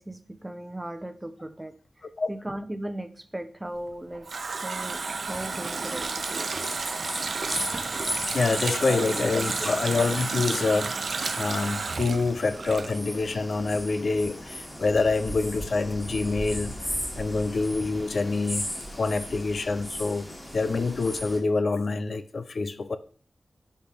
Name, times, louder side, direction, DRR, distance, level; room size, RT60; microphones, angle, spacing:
voice 1, 0.0-1.7 2.3-6.6 8.8-9.0, right 1 dB, 15° right, 0.7 m, -37 dB
Water tap faucet, 3.8-13.4 13.7-13.8, right 4 dB, 70° right, 0.5 m, -32 dB
sound 1, 5.2-21.4, equal, 20° left, 2.7 m, -37 dB
sound 2, 6.7-13.7, right 2 dB, 40° right, 1.1 m, -49 dB
voice 2, 7.6-8.0 8.3-10.9 11.4-16.8 17.2-18.7 19.0-20.3 20.5-23.0, left 3 dB, 65° left, 0.5 m, -26 dB
10.5 x 4.5 x 3.4 m
wide cardioid pair, 85°, 0 cm